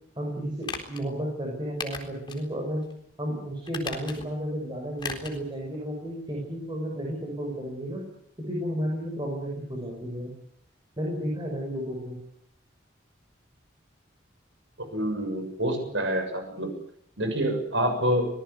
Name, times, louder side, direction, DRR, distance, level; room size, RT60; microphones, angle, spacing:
voice 1, 0.2-2.8 3.2-8.0 8.5-10.3 11.0-12.2, equal, 25° right, -1 dB, 6.3 m, -32 dB
sound 1, 0.6-1.0 1.8-2.4 2.8-2.9 3.6-4.4 5.0-5.4 5.7-5.8, left 4 dB, 25° left, 4.0 m, -37 dB
voice 2, 14.8-16.7 17.2-18.3, equal, 75° right, 5 dB, 6.8 m, -27 dB
24.5 x 20.0 x 8.1 m, 0.69 s
head